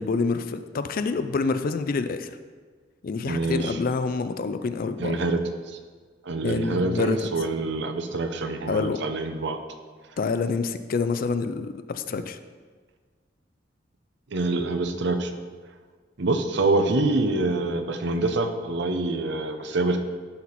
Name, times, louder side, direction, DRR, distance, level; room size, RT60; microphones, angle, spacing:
voice 1, 0.0-2.3 3.0-5.1 6.4-7.2 8.7-9.0 10.2-12.4, left 4 dB, 50° left, 10 dB, 0.4 m, -27 dB
voice 2, 3.3-3.8 5.0-5.4 5.7-5.8 6.3-9.6 14.3-15.3 16.2-20.0, right 2 dB, 70° right, 7 dB, 0.7 m, -26 dB
11.5 x 4.2 x 4.1 m, 1.5 s
head